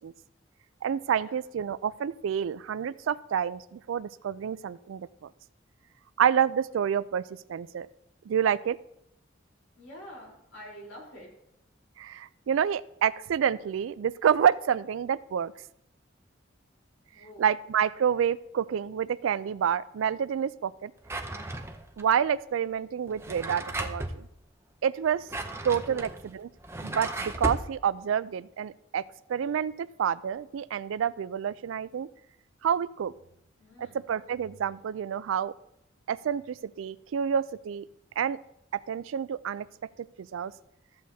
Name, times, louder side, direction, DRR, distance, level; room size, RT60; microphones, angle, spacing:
voice 1, 0.8-5.1 6.2-7.2 7.5-7.9 8.3-8.8 12.0-15.5 17.4-20.9 22.0-24.3 24.8-25.2 25.6-26.5 26.8-29.0 29.3-32.1 32.6-33.1 33.8-35.5 36.1-37.9 38.2-38.4 38.9-39.7 40.2-40.5, right 8 dB, 80° right, 18 dB, 0.3 m, -28 dB
voice 2, 9.8-11.3 17.1-17.4 25.9-26.1 33.6-34.0, equal, 85° left, -2 dB, 3.8 m, -46 dB
Drawer open or close, 21.0-22.0 23.1-24.2 25.0-27.7, right 2 dB, 15° right, 0.5 m, -35 dB
14.0 x 7.7 x 2.7 m, 0.79 s
head